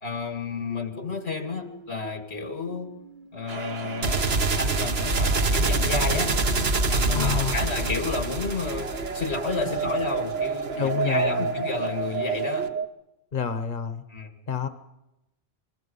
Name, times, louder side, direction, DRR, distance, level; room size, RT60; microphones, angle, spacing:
voice 1, 0.0-3.0 3.3-6.4 6.9-12.7 14.1-14.3, left 4 dB, 90° left, 6 dB, 2.6 m, -31 dB
sound 1, 0.7-4.5 7.3-12.9, right 6 dB, 50° right, 1.0 m, -32 dB
sound 2, 3.5-12.7, right 3 dB, 70° right, 1.5 m, -27 dB
voice 2, 7.1-7.6 9.6-9.9 10.8-11.6 13.3-14.0 14.5-14.7, left 6 dB, 50° left, 10 dB, 1.2 m, -29 dB
26.5 x 21.0 x 5.5 m, 0.93 s
omnidirectional pair, 1.1 m